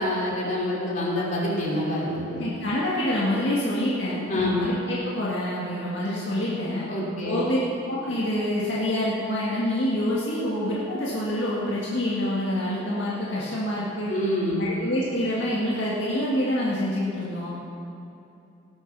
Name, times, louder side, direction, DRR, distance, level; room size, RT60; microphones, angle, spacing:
voice 1, 0.0-2.4 4.3-4.7 6.9-7.4 14.1-14.8, left 1 dB, 40° left, -4 dB, 3.0 m, -26 dB
voice 2, 2.4-6.9 7.2-7.6 7.9-14.1 14.6-17.5, left 1 dB, 60° left, -6 dB, 1.9 m, -26 dB
18.0 x 7.3 x 6.1 m, 2.8 s
head